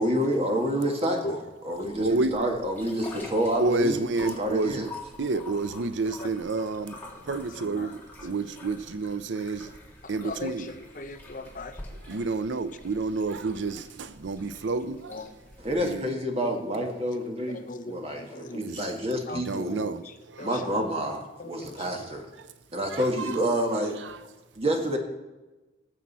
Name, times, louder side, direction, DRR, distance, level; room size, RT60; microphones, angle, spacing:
voice 1, 0.0-4.9 15.6-19.9 20.4-22.3 22.7-24.0 24.6-25.0, equal, 35° right, 1.6 m, -28 dB
sound 1, 1.7-16.0, left 2 dB, 10° left, 2.0 m, -47 dB
voice 2, 2.0-2.3 3.6-4.9 5.2-7.0 7.3-9.7 10.1-10.7 12.1-15.2 15.8-16.1 18.6-18.8 19.3-20.5 22.9-23.0 23.5-23.7 24.0-24.2, right 3 dB, 85° right, 0.6 m, -29 dB
voice 3, 7.6-7.9 10.0-11.8 14.8-15.3 17.2-18.6 19.3-19.4 20.4-20.5 21.4-21.7 22.7-22.8, left 3 dB, 45° left, 0.8 m, -39 dB
19.0 x 7.4 x 4.2 m
head